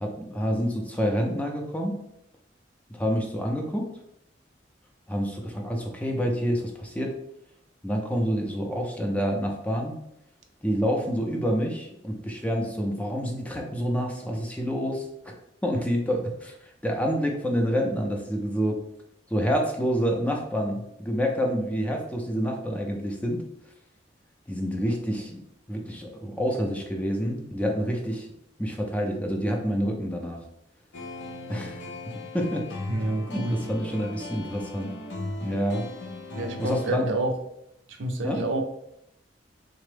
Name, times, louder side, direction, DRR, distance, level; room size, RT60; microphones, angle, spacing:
voice 1, 0.0-2.0 2.9-3.9 5.1-7.2 7.8-10.0 10.6-15.3 15.6-18.8 19.3-23.4 24.5-25.4 25.7-28.3 28.6-30.4 31.5-31.8 32.3-32.7 33.3-34.9 35.4-35.9 36.6-37.1 38.2-38.4, equal, 10° left, 1 dB, 0.4 m, -28 dB
sound 1, 30.9-36.9, left 2 dB, 80° left, 0.7 m, -37 dB
voice 2, 32.9-33.6 36.4-37.4 37.9-38.6, right 2 dB, 90° right, 4 dB, 0.5 m, -28 dB
3.4 x 2.0 x 3.2 m, 0.79 s
head